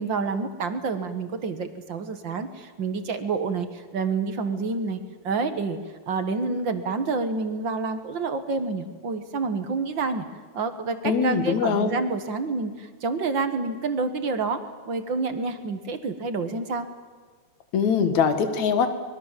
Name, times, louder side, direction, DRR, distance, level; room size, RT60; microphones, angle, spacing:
voice 1, 0.0-5.0 5.2-5.8 6.1-10.2 10.5-16.9, right 4 dB, 45° right, 9 dB, 1.8 m, -28 dB
voice 2, 11.0-11.9 17.7-18.9, left 6 dB, 75° left, 9 dB, 3.1 m, -22 dB
25.0 x 22.0 x 7.5 m, 1.5 s
omnidirectional pair, 3.3 m